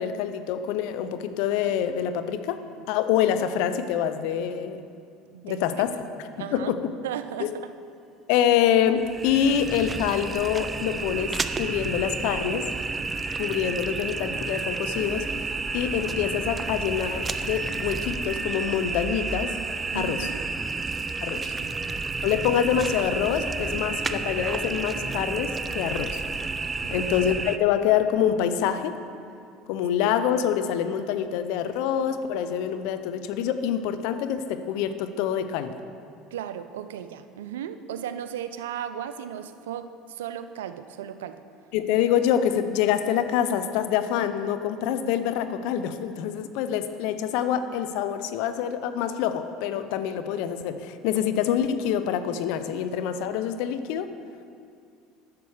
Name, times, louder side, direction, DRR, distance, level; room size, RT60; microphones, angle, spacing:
voice 1, 0.0-2.6 2.9-4.8 5.4-5.9 6.5-6.8 7.4-7.5 8.3-12.7 13.4-15.3 15.7-19.5 19.9-20.3 21.2-21.5 22.2-26.2 26.9-29.0 29.7-35.7 41.7-54.1, left 9 dB, 70° left, 10 dB, 0.6 m, -26 dB
voice 2, 5.3-6.0 6.4-6.7 7.0-7.7 19.9-20.5 21.6-21.7 26.8-27.0 36.3-41.4, right 9 dB, 85° right, 11 dB, 0.4 m, -36 dB
sound 1, 9.0-27.6, right 4 dB, 25° right, 0.4 m, -31 dB
10.5 x 6.9 x 4.9 m, 2.4 s
hypercardioid pair, 85°, 0 cm